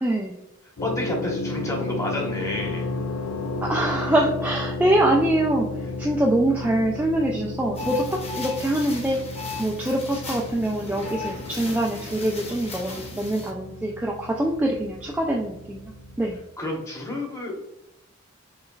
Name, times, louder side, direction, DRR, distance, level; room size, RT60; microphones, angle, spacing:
voice 1, 0.0-0.4 3.6-5.7 6.0-9.2 9.6-15.9 16.2-16.4, right 1 dB, 10° right, -2 dB, 0.3 m, -24 dB
sound 1, 0.8-16.4, left 2 dB, 65° left, 0.6 m, -34 dB
voice 2, 0.8-2.9 5.8-5.9 16.6-17.5, left 1 dB, 15° left, -1 dB, 1.0 m, -30 dB
sound 2, 7.7-13.5, left 3 dB, 30° left, 0.7 m, -36 dB
5.5 x 3.1 x 2.3 m, 0.89 s
head